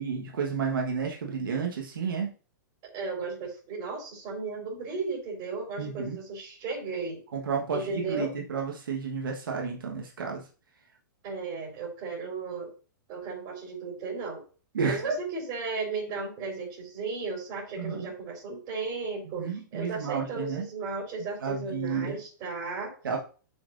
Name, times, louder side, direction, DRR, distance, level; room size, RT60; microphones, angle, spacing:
voice 1, 0.0-2.3 5.8-6.2 7.3-10.5 14.7-15.2 17.8-18.1 19.2-20.7 21.4-22.2 23.0-23.2, right 5 dB, 90° right, 1 dB, 1.4 m, -31 dB
voice 2, 2.9-7.2 7.7-8.3 11.2-12.7 13.1-14.4 14.8-22.9, right 4 dB, 35° right, -1 dB, 3.9 m, -35 dB
11.0 x 5.8 x 2.6 m, 0.37 s
hypercardioid pair, 150°, 11 cm